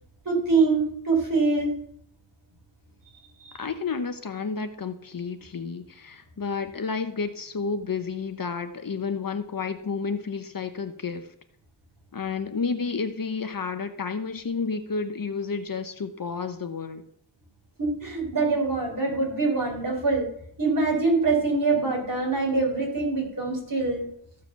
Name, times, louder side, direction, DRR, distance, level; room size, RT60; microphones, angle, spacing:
voice 1, 0.3-1.8 3.4-3.6 17.8-20.3 20.6-24.1, right 3 dB, 45° right, 0 dB, 4.0 m, -24 dB
voice 2, 3.5-11.3 12.1-17.0, left 5 dB, 50° left, 9 dB, 0.9 m, -31 dB
14.0 x 4.9 x 6.9 m, 0.70 s
wide cardioid pair, 105°, 44 cm